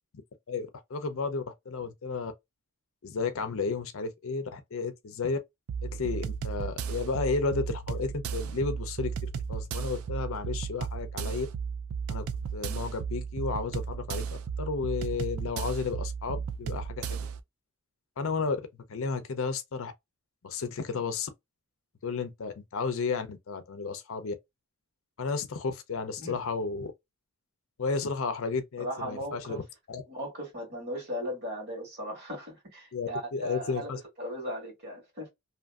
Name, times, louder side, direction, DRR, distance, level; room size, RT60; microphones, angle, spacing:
voice 1, 0.5-2.3 3.0-5.4 5.8-11.5 12.1-12.2 12.5-14.2 14.6-17.0 18.2-19.9 20.4-21.3 22.0-24.3 25.2-26.9 27.8-29.6 29.9-30.0 32.9-34.0, left 4 dB, 65° left, 0.5 m, -32 dB
sound 1, 5.7-17.4, right 6 dB, 70° right, 0.3 m, -34 dB
voice 2, 28.8-29.6 30.1-35.3, equal, 50° right, 1.7 m, -37 dB
2.8 x 2.5 x 2.3 m
head